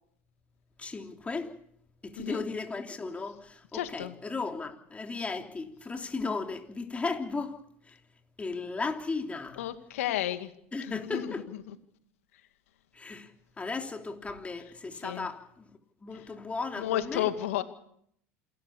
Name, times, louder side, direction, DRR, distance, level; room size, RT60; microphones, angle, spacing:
voice 1, 0.8-1.5 2.0-7.5 7.9-8.0 8.4-9.6 10.7-11.4 12.9-13.3 13.6-15.7 16.0-17.3, left 4 dB, 15° left, 3.4 m, -35 dB
voice 2, 3.7-4.1 9.6-10.5 10.8-11.3 11.7-11.8 15.0-15.3 16.8-17.6, left 12 dB, 80° left, 2.2 m, -32 dB
27.5 x 13.5 x 8.5 m
hypercardioid pair, 90°, 7 cm